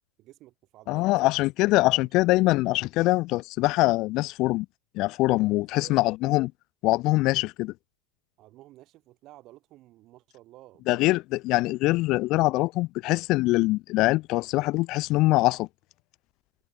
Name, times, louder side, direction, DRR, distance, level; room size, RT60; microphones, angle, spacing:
voice 1, 0.2-1.3 2.0-2.1 5.4-6.1 8.4-11.2, right 16 dB, 45° right, 6.0 m, -52 dB
voice 2, 0.9-4.7 4.9-6.5 6.8-7.7 10.9-15.7, left 20 dB, 50° left, 0.3 m, -23 dB
supercardioid pair, 120°, 0 cm